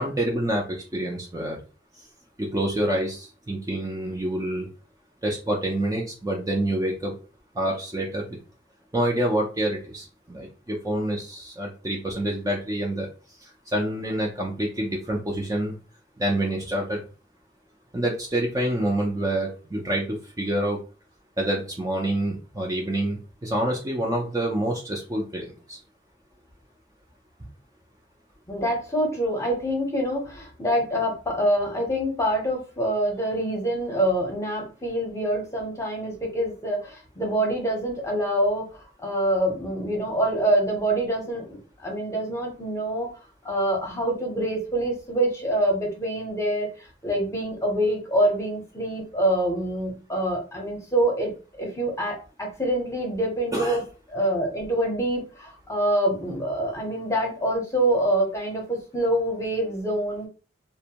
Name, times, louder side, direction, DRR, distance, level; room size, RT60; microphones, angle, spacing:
voice 1, 0.0-1.6 2.4-4.7 5.2-7.1 7.6-8.3 8.9-13.1 13.4-15.8 16.2-17.0 17.9-20.8 21.4-25.8 53.5-53.8, right 1 dB, 20° right, -1 dB, 0.4 m, -27 dB
voice 2, 28.5-38.7 39.0-43.1 43.4-46.7 47.0-53.8 54.1-60.3, right 1 dB, 15° left, 0 dB, 0.8 m, -25 dB
2.5 x 2.1 x 2.8 m, 0.34 s
head